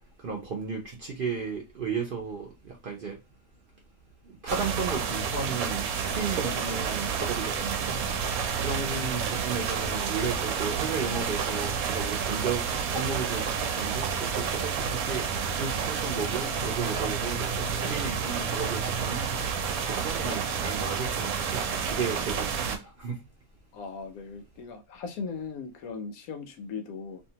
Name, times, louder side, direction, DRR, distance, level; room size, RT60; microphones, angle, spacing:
voice 1, 0.2-3.2 4.2-8.3 8.6-12.7 12.9-19.5 19.8-23.2, right 5 dB, 60° right, 0.6 m, -34 dB
sound 1, 4.5-22.8, right 6 dB, 85° right, 1.0 m, -30 dB
voice 2, 8.7-9.1 23.7-27.2, left 5 dB, 85° left, 1.1 m, -38 dB
2.7 x 2.3 x 2.8 m
omnidirectional pair, 1.5 m